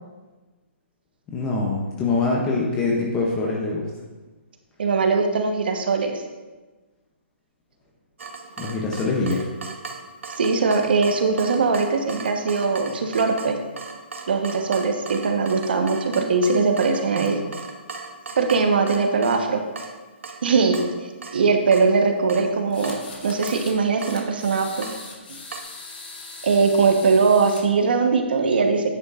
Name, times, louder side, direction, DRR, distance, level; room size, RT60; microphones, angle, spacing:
voice 1, 1.3-3.9 8.6-9.5, left 3 dB, 10° left, -1 dB, 0.5 m, -24 dB
voice 2, 4.8-6.2 10.4-13.6 14.3-17.4 18.4-19.6 20.4-20.8 21.3-23.0 23.2-24.9 26.4-29.0, right 4 dB, 50° right, 5 dB, 1.0 m, -21 dB
Water tap faucet / Drip, 8.2-25.6, right 4 dB, 80° right, 1.0 m, -39 dB
sound 1, 22.7-23.7 24.0-27.6, left 3 dB, 55° left, 2.1 m, -40 dB
9.6 x 9.5 x 2.4 m, 1.2 s
hypercardioid pair, 180°, 7 cm